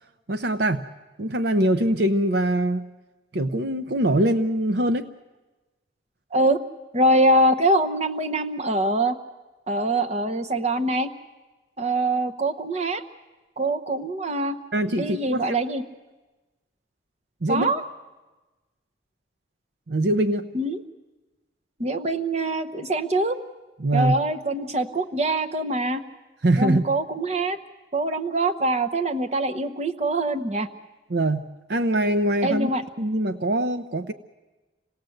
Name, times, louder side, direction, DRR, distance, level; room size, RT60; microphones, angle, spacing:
voice 1, 0.3-0.8 1.2-2.9 3.3-5.1 14.7-15.6 17.4-17.7 19.9-20.5 23.8-24.2 26.4-26.8 31.1-32.7 33.0-34.1, right 1 dB, 60° right, 10 dB, 0.7 m, -23 dB
voice 2, 6.9-9.1 9.7-11.1 11.8-13.0 13.6-14.6 15.0-15.8 17.5-17.8 20.5-20.8 21.8-23.4 23.9-26.0 26.6-27.6 27.9-30.7 32.4-32.8, right 2 dB, 35° right, 9 dB, 0.9 m, -23 dB
27.0 x 18.0 x 7.8 m, 1.2 s
head